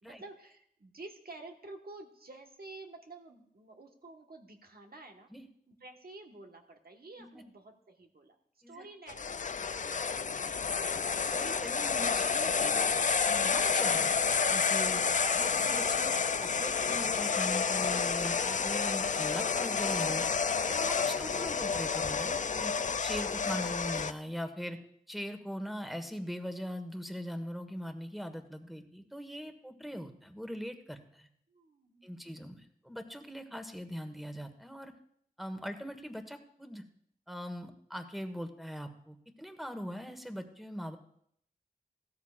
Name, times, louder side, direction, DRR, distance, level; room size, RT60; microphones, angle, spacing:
voice 1, 0.0-5.3 5.7-8.4 8.7-10.9 11.8-11.9 15.1-15.3 31.5-32.5, right 2 dB, 70° right, 3 dB, 1.4 m, -51 dB
sound 1, 9.1-24.1, left 5 dB, 50° left, 0.4 m, -30 dB
voice 2, 11.3-12.7 13.2-14.1 14.5-20.3 20.7-22.7 23.0-24.8 25.1-31.3 32.0-34.9 35.4-36.8 37.3-41.0, equal, ahead, 7 dB, 1.4 m, -41 dB
15.5 x 13.5 x 2.5 m, 0.69 s
cardioid pair, 40°, 16 cm